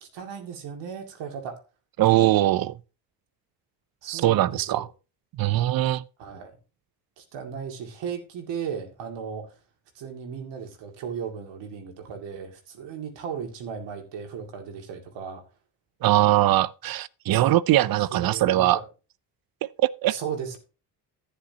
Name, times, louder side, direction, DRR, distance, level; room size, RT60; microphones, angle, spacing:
voice 1, 0.0-1.6 4.0-4.9 6.2-6.6 7.2-9.5 9.9-15.4 18.1-18.8 20.1-20.6, right 7 dB, 80° right, 2.3 m, -36 dB
voice 2, 2.0-2.8 4.1-4.9 5.4-6.0 16.0-18.8 19.6-20.2, right 15 dB, 55° right, 0.6 m, -21 dB
11.5 x 9.8 x 2.8 m
cardioid pair, 85°, 42 cm